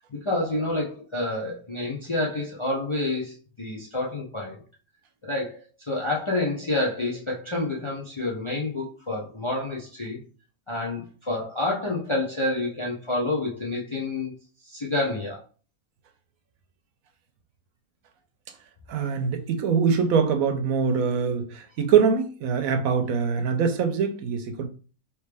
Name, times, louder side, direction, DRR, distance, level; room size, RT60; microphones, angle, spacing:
voice 1, 0.0-4.6 5.2-5.6 5.9-10.2 10.7-14.3 14.7-15.4, left 2 dB, 45° left, -2 dB, 0.4 m, -28 dB
voice 2, 18.9-24.7, right 6 dB, 75° right, 7 dB, 1.1 m, -23 dB
3.3 x 3.1 x 3.3 m, 0.37 s
omnidirectional pair, 1.6 m